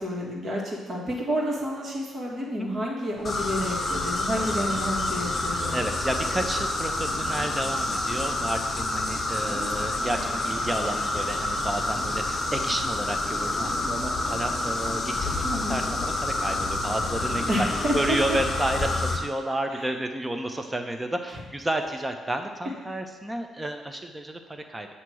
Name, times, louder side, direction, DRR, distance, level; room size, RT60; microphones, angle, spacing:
voice 1, 0.0-5.8 9.4-9.7 10.0-10.2 15.4-15.8 17.5-18.2 19.7-19.8, equal, 45° right, -2 dB, 1.6 m, -30 dB
sound 1, 3.2-19.2, left 2 dB, 35° left, 1.1 m, -28 dB
sound 2, 3.2-14.5, right 1 dB, 75° right, 1.5 m, -45 dB
voice 2, 4.3-17.5 17.9-24.9, right 1 dB, 15° right, 5 dB, 0.7 m, -31 dB
8.2 x 2.9 x 6.2 m, 1.3 s
cardioid pair, 90°, 0 cm